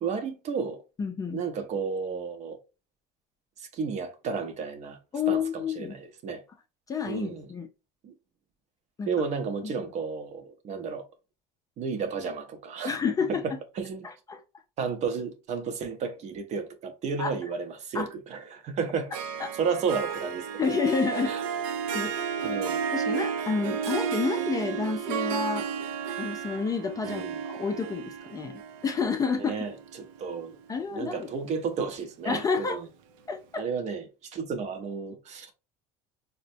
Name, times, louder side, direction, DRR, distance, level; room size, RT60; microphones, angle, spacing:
voice 1, 0.0-0.8 1.3-2.6 3.6-5.0 5.3-6.4 7.1-7.5 8.0-8.1 9.1-11.0 11.8-12.9 13.3-14.1 14.8-19.1 19.5-20.5 21.3-21.4 22.4-22.8 27.0-27.4 29.4-30.6 30.9-32.9 33.6-35.5, right 5 dB, 45° right, 0.7 m, -32 dB
voice 2, 1.0-1.4 5.1-5.9 6.9-7.7 9.0-9.1 9.6-9.7 12.8-13.4 14.0-14.4 17.2-17.4 17.9-18.1 19.4-19.5 20.6-21.3 21.9-22.2 22.9-25.7 26.2-27.2 27.5-29.5 30.7-31.3 32.3-32.8 33.3-33.6, left 5 dB, 20° left, 0.4 m, -29 dB
Harp, 19.1-30.5, right 7 dB, 85° right, 0.5 m, -32 dB
4.0 x 2.1 x 2.6 m
cardioid pair, 125°, 16 cm